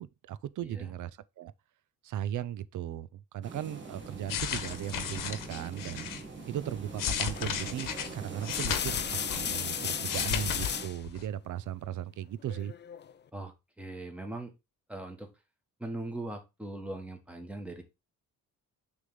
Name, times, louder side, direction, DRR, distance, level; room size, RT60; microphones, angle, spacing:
voice 1, 0.0-1.5 2.0-6.1 6.5-12.7, right 11 dB, 65° right, 0.5 m, -37 dB
sound 1, 3.4-10.9, right 4 dB, 35° right, 1.7 m, -43 dB
sound 2, 4.0-6.2 6.8-9.7 9.9-10.7 11.0-11.2, left 9 dB, 75° left, 1.1 m, -35 dB
sound 3, 7.4-7.7 8.3-11.0 12.5-13.1, left 8 dB, 35° left, 0.4 m, -35 dB
voice 2, 13.3-14.5 14.9-15.3 15.8-17.8, right 2 dB, 5° right, 1.4 m, -40 dB
6.6 x 3.4 x 5.5 m
cardioid pair, 145°, 33 cm